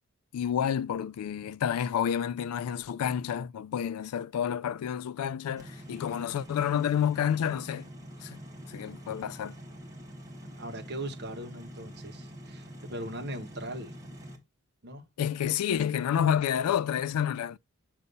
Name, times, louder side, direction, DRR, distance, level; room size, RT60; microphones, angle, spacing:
voice 1, 0.3-7.9 8.2-8.4 8.7-9.6 15.2-17.6, left 9 dB, 80° left, 0.3 m, -29 dB
sound 1, 5.6-14.4, equal, 15° right, 1.2 m, -45 dB
voice 2, 10.4-14.0 14.8-15.1, right 1 dB, 50° right, 1.1 m, -40 dB
6.6 x 2.7 x 5.3 m
head